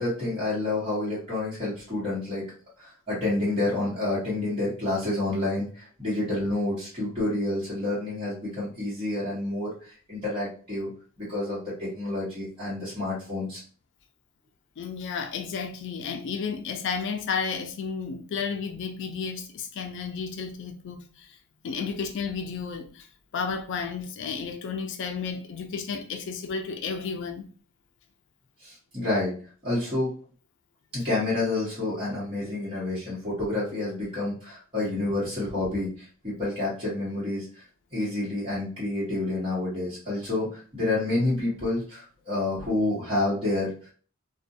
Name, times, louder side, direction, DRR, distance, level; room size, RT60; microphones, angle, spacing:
voice 1, 0.0-2.4 2.8-10.9 11.2-13.6 28.6-29.3 29.6-30.1 30.9-43.7, left 2 dB, 30° right, 1.0 m, -29 dB
voice 2, 14.8-21.4 21.6-23.1 23.3-27.5, left 5 dB, 60° left, 0.3 m, -32 dB
2.4 x 2.1 x 2.6 m
head